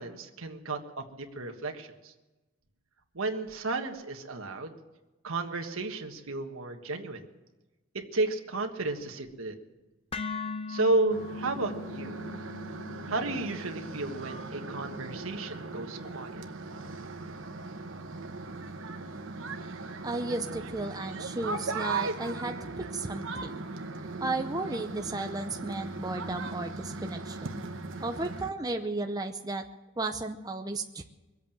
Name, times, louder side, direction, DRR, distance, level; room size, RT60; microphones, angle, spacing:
voice 1, 0.0-2.1 3.1-4.7 5.2-7.2 7.9-9.5 10.7-12.2 13.1-16.4, right 2 dB, 85° right, 4 dB, 1.5 m, -32 dB
sound 1, 10.1-18.2, left 4 dB, 25° left, 0.6 m, -42 dB
sound 2, 11.1-28.5, right 3 dB, 65° right, 1.1 m, -38 dB
voice 2, 20.0-23.6 24.2-27.6 28.0-29.6 30.0-31.0, right 2 dB, 20° right, 4 dB, 0.7 m, -34 dB
23.0 x 8.3 x 7.2 m, 1.1 s
head